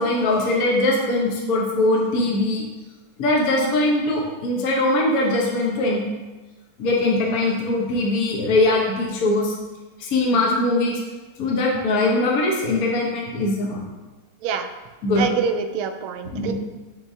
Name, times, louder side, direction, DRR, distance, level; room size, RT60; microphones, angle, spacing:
voice 1, 0.0-2.6 3.2-6.0 6.8-9.5 10.0-11.0 11.4-13.8 15.0-15.3 16.3-16.5, left 2 dB, 50° left, -2 dB, 1.3 m, -21 dB
voice 2, 15.2-16.5, right 6 dB, 85° right, 7 dB, 1.4 m, -25 dB
10.5 x 3.7 x 2.7 m, 1.2 s
omnidirectional pair, 2.2 m